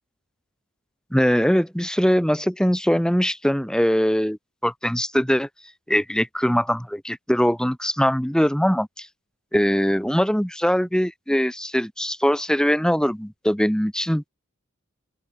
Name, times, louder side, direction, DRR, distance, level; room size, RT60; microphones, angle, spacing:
voice 1, 1.1-4.4 4.6-5.5 5.9-9.1 9.5-14.2, equal, 5° left, 2.3 m, -21 dB
open air
head